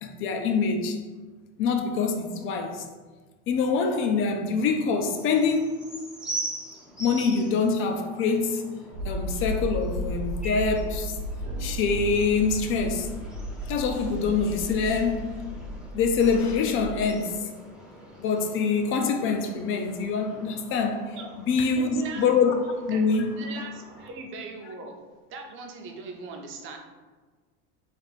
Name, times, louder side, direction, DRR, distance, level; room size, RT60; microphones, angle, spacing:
voice 1, 0.0-1.0 1.6-2.8 3.5-5.8 7.0-8.7 9.0-11.1 11.6-13.1 13.7-15.4 15.9-17.4 18.2-21.2 21.5-22.5 22.9-23.3, left 5 dB, 40° left, 0.5 m, -25 dB
sound 1, 5.1-24.1, right 2 dB, ahead, 0.7 m, -43 dB
sound 2, 8.9-16.9, equal, 70° right, 0.9 m, -34 dB
voice 2, 21.6-22.2 22.9-23.0 23.4-25.0 25.3-26.8, right 3 dB, 40° right, 0.6 m, -39 dB
3.4 x 2.6 x 4.0 m
cardioid pair, 140°, 32 cm